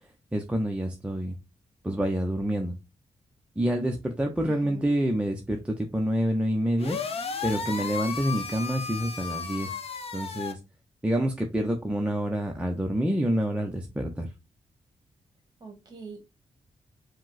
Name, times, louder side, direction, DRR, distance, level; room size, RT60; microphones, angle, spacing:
voice 1, 0.3-1.3 1.8-2.7 3.6-7.0 7.4-9.7 10.1-10.6 11.0-14.3, right 1 dB, 10° right, 0.5 m, -27 dB
voice 2, 4.4-4.9 15.6-16.2, right 4 dB, 35° right, 1.6 m, -43 dB
sound 1, 6.8-10.5, left 5 dB, 55° left, 0.7 m, -34 dB
5.0 x 2.1 x 3.9 m
wide cardioid pair, 125°, 12 cm